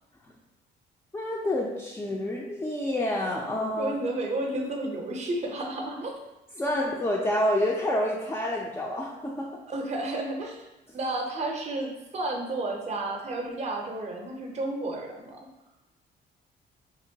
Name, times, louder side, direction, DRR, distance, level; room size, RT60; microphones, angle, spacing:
voice 1, 1.1-4.0 6.6-9.6, left 1 dB, 10° left, -3 dB, 0.4 m, -28 dB
voice 2, 3.8-6.2 9.7-15.4, right 2 dB, 35° right, 1 dB, 0.6 m, -32 dB
2.9 x 2.1 x 2.6 m, 1.0 s
cardioid pair, 90°, 20 cm